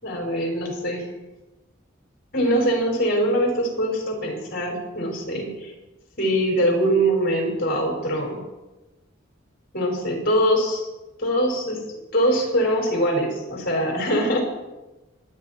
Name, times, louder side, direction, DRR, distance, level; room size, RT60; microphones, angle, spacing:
voice 1, 0.0-1.1 2.3-5.7 6.2-8.4 9.7-10.9 11.2-11.8 12.1-14.4, equal, 50° left, 0 dB, 5.3 m, -23 dB
26.0 x 9.6 x 4.5 m, 1.1 s
head